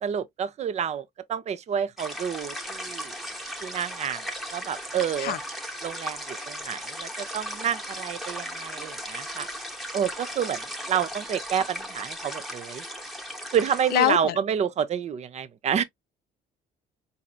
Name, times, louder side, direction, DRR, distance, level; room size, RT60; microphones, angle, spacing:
voice 1, 0.0-3.1 3.6-4.2 4.5-5.4 5.8-9.5 9.9-12.8 13.5-15.8, right 8 dB, 40° right, 0.6 m, -29 dB
sound 1, 2.0-14.2, equal, ahead, 0.9 m, -37 dB
voice 2, 13.9-14.4, left 14 dB, 65° left, 0.6 m, -23 dB
4.8 x 2.8 x 2.3 m
cardioid pair, 110°, 17 cm